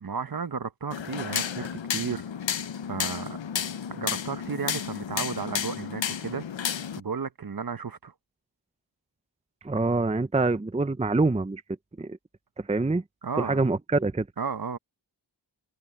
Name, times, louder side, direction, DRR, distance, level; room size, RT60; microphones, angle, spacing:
voice 1, 0.0-2.3 2.9-3.4 3.9-8.1 13.2-13.6 14.4-14.8, right 5 dB, 50° right, 1.3 m, -34 dB
sound 1, 0.9-7.0, left 8 dB, 80° left, 1.0 m, -32 dB
voice 2, 9.6-11.6 12.0-12.2 12.6-13.0 13.4-14.3, right 3 dB, 15° right, 0.7 m, -25 dB
cardioid pair, 50°, 45 cm